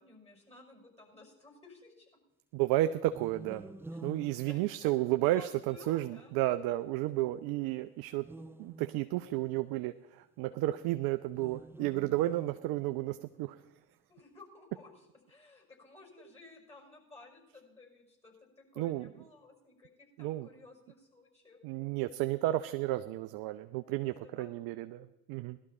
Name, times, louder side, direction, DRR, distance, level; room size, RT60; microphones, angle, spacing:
voice 1, 0.0-2.1 4.3-4.9 5.2-6.3 14.1-21.9 23.8-24.7, left 3 dB, 15° left, 1 dB, 5.8 m, -55 dB
voice 2, 2.5-3.7 4.0-8.3 8.6-13.6 18.8-19.1 20.2-20.5 21.6-25.6, right 15 dB, 60° right, 10 dB, 0.7 m, -32 dB
sound 1, 3.1-5.4 8.1-9.4 11.3-13.2, right 2 dB, 5° right, 0.5 m, -49 dB
18.0 x 12.0 x 4.3 m, 1.0 s
hypercardioid pair, 70°, 42 cm